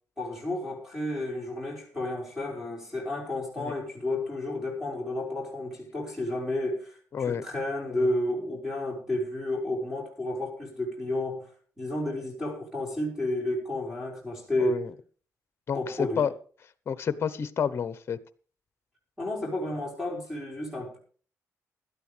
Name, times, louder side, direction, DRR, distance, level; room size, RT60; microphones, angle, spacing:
voice 1, 0.2-11.5 11.8-14.8 15.7-16.3 19.2-21.0, left 1 dB, 5° right, 5.1 m, -31 dB
voice 2, 7.1-7.4 7.9-8.0 14.6-14.9 15.7-16.3 16.9-18.2, left 7 dB, 40° left, 0.9 m, -29 dB
17.0 x 12.5 x 3.4 m
cardioid pair, 145°, 6 cm